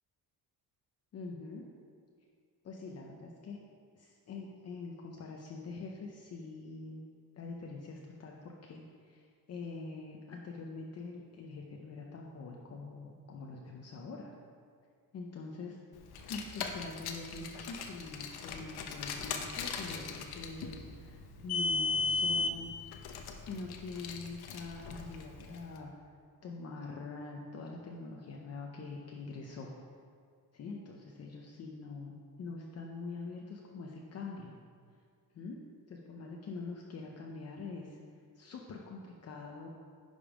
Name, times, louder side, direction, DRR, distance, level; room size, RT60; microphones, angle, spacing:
voice 1, 1.1-1.7 2.6-3.6 3.9-7.0 7.4-14.3 15.1-15.8 16.3-22.7 23.5-25.9 26.4-29.8 30.5-34.6 35.3-35.6 35.9-38.0 38.3-39.7, left 3 dB, 40° left, 0 dB, 0.7 m, -44 dB
Car, 16.1-25.6, left 4 dB, 75° left, 0.9 m, -37 dB
10.5 x 5.3 x 4.9 m, 2.1 s
cardioid pair, 175°, 38 cm